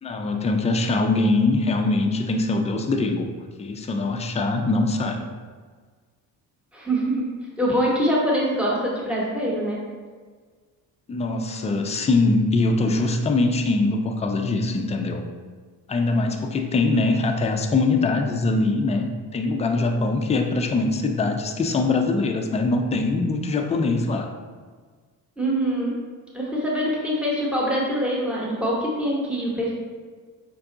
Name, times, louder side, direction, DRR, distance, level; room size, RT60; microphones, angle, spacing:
voice 1, 0.0-3.3 3.6-5.3 11.1-15.2 15.9-24.3, left 3 dB, 20° left, 4 dB, 0.4 m, -22 dB
voice 2, 6.7-7.3 7.6-9.8 16.8-16.9 25.4-25.9 26.3-29.7, equal, 5° right, -5 dB, 1.0 m, -24 dB
5.3 x 2.3 x 3.8 m, 1.5 s
cardioid pair, 115°, 37 cm